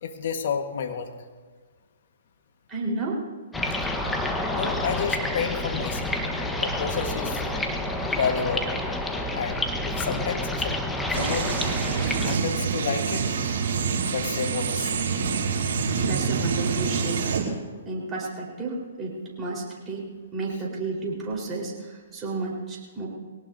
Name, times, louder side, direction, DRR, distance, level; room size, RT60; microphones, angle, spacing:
voice 1, 0.0-1.1 4.5-6.1 6.6-7.4 8.1-8.7 9.3-10.8 11.1-11.5 12.2-13.3 14.1-14.9, left 6 dB, 60° left, 6 dB, 1.5 m, -30 dB
voice 2, 2.7-3.2 15.7-17.3 17.9-23.1, right 3 dB, 20° right, -3 dB, 4.3 m, -32 dB
sound 1, 3.5-12.4, left 1 dB, 5° left, 1.2 m, -28 dB
sound 2, 11.1-17.4, right 5 dB, 60° right, 4.4 m, -26 dB
22.5 x 18.0 x 2.8 m, 1.4 s
hypercardioid pair, 130°, 0 cm